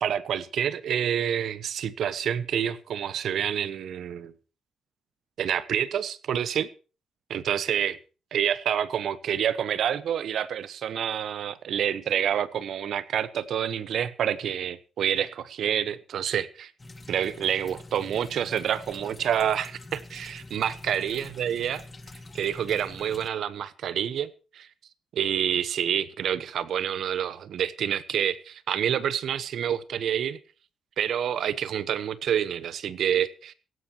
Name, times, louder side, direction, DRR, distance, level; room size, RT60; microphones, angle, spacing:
voice 1, 0.0-4.3 5.4-6.7 7.3-7.9 8.3-16.7 17.1-21.8 22.3-24.7 25.1-30.4 31.0-33.5, right 9 dB, 60° right, 1.1 m, -28 dB
sound 1, 16.8-23.3, left 2 dB, 15° left, 1.7 m, -45 dB
17.0 x 16.0 x 3.0 m
cardioid pair, 170°, 0 cm